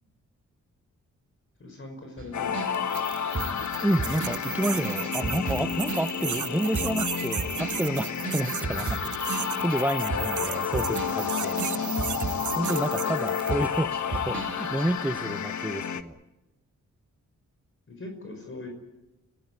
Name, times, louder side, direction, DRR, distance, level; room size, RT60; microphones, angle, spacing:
voice 1, 1.6-2.7 18.0-18.7, left 2 dB, 45° left, 4 dB, 5.5 m, -40 dB
sound 1, 2.2-6.5 6.7-13.2 13.5-14.9, right 4 dB, 40° right, 2.5 m, -35 dB
sound 2, 2.3-16.0, left 7 dB, 70° left, 1.4 m, -31 dB
sound 3, 2.7-13.7, right 10 dB, 75° right, 0.9 m, -36 dB
voice 2, 3.8-12.0 12.6-13.9 14.3-16.2, right 1 dB, 5° right, 14 dB, 0.8 m, -30 dB
25.5 x 17.0 x 9.5 m, 1.0 s
cardioid pair, 75°, 30 cm